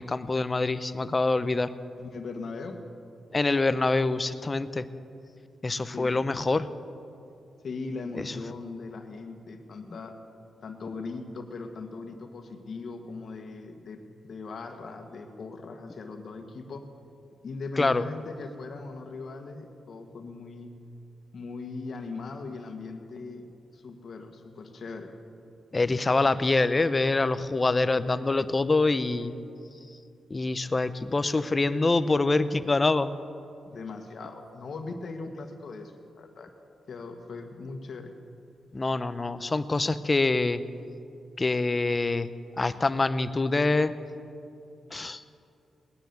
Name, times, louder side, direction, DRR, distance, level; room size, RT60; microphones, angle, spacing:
voice 1, 0.0-1.7 3.3-4.8 5.6-6.7 8.2-8.4 17.8-18.0 25.7-29.3 30.3-33.1 38.7-40.6 41.4-42.3 42.6-43.9 44.9-45.2, left 3 dB, 30° left, 13 dB, 0.7 m, -25 dB
voice 2, 2.0-2.8 5.9-6.2 7.6-10.2 10.6-16.9 17.4-20.7 21.3-23.4 23.7-25.1 33.7-36.5 36.9-38.1, left 3 dB, 60° left, 5 dB, 1.6 m, -39 dB
19.0 x 10.5 x 7.0 m, 2.6 s
cardioid pair, 75°, 0 cm